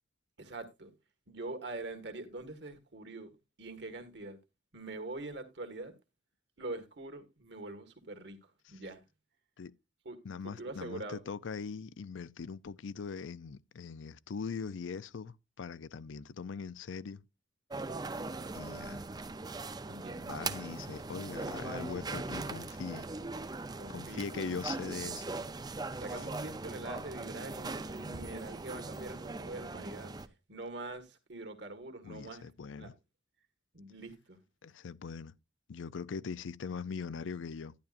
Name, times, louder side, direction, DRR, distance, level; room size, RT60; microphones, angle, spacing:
voice 1, 0.4-0.9 1.3-3.3 3.6-4.4 4.7-5.9 6.6-9.0 10.0-10.2 10.4-11.2 19.8-20.3 23.7-24.3 25.7-30.1 30.5-32.5 32.8-32.9 33.7-34.4, right 2 dB, 65° right, 1.8 m, -44 dB
voice 2, 10.2-17.2 18.5-19.0 20.3-23.0 23.9-25.2 32.0-32.9 34.6-35.3 35.7-37.7, left 5 dB, 85° left, 0.5 m, -41 dB
sound 1, 17.7-30.3, right 3 dB, 20° right, 0.5 m, -40 dB
11.5 x 10.5 x 2.5 m
head